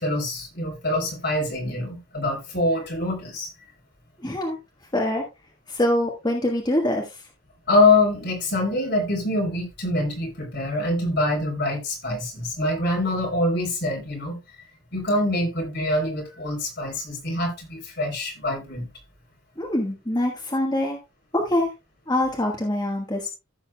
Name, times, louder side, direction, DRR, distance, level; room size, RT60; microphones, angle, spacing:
voice 1, 0.0-3.5 7.7-14.4 14.9-18.9, left 2 dB, 50° left, 3.8 m, -24 dB
voice 2, 4.2-4.6 4.9-5.2 5.7-7.3 19.6-21.0 21.3-21.7 22.1-23.3, left 1 dB, 20° left, 1.4 m, -24 dB
15.0 x 7.0 x 2.3 m
head